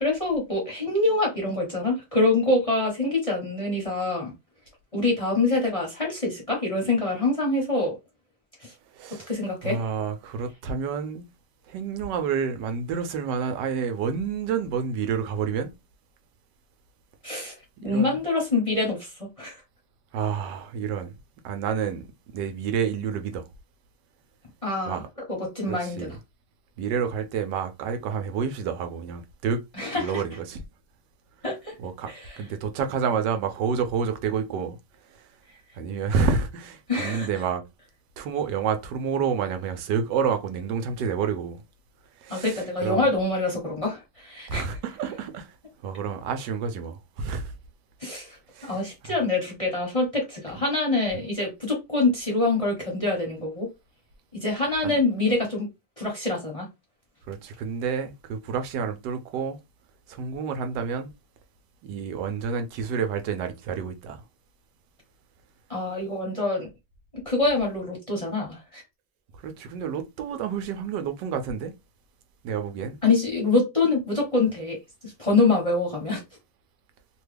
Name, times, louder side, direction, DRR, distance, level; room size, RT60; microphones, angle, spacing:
voice 1, 0.0-4.3 4.9-8.0 8.6-8.7 9.3-9.8 17.2-19.5 24.6-25.0 25.3-26.1 29.8-30.2 31.4-31.7 32.1-32.4 36.9-37.3 42.3-44.6 48.0-48.4 48.6-53.7 54.3-55.7 56.0-56.7 65.7-66.7 67.2-68.8 73.0-74.8 75.0-76.2, left 2 dB, 25° left, 0.9 m, -25 dB
voice 2, 8.9-9.3 9.6-11.3 11.7-15.7 17.8-18.2 20.1-21.1 21.4-22.1 22.3-23.5 24.9-25.1 25.7-26.2 26.8-29.6 30.0-30.6 31.8-34.8 35.0-35.3 35.7-37.6 38.2-41.6 42.2-43.0 44.5-45.5 45.8-47.5 48.5-49.1 51.1-51.2 54.8-55.0 57.3-59.6 60.1-61.1 61.8-64.2 69.4-71.7 72.4-73.0, right 6 dB, 85° right, 1.2 m, -29 dB
3.1 x 2.2 x 3.3 m
omnidirectional pair, 1.8 m